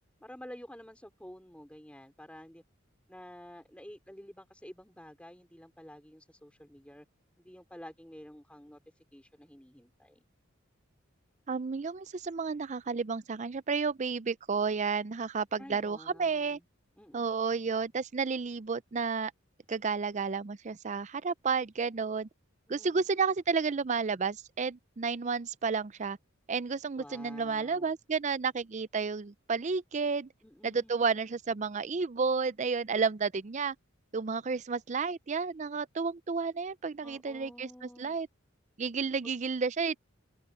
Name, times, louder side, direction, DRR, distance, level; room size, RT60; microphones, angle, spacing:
voice 1, 0.2-2.6 3.1-7.1 7.4-8.8 9.1-10.2 15.6-16.7 17.0-17.7 22.8-23.1 27.0-27.9 30.4-31.3 37.0-38.2 39.2-39.4, equal, 5° left, 4.4 m, -50 dB
voice 2, 11.5-16.6 17.1-19.3 19.7-22.3 22.7-26.2 26.5-30.3 30.6-33.8 34.1-38.3 38.8-40.0, right 5 dB, 35° right, 0.4 m, -31 dB
head